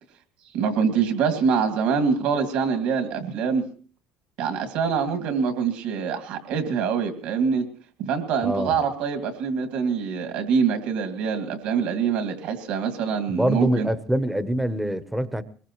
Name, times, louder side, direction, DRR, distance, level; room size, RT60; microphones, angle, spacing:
voice 1, 0.5-3.6 4.4-7.7 8.0-13.9, right 6 dB, 70° right, 2.2 m, -24 dB
voice 2, 8.4-8.8 13.3-15.4, right 1 dB, 5° right, 0.8 m, -24 dB
22.0 x 21.5 x 3.0 m
cardioid pair, 160°, 2 cm